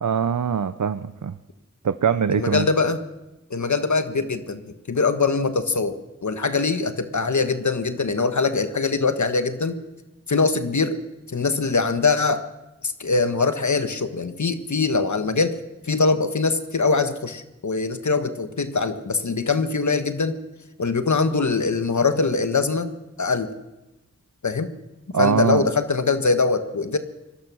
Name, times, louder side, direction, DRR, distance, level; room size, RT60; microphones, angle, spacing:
voice 1, 0.0-1.3 1.8-2.7 25.1-25.7, right 7 dB, 85° right, 12 dB, 0.7 m, -22 dB
voice 2, 2.3-3.0 3.5-9.8 10.3-11.0 11.3-12.4 12.8-15.6 15.9-20.4 20.8-22.9 23.2-23.5 24.4-24.7 25.2-27.0, left 4 dB, 75° left, 8 dB, 1.4 m, -22 dB
23.5 x 19.5 x 6.3 m, 0.98 s
wide cardioid pair, 45°, 29 cm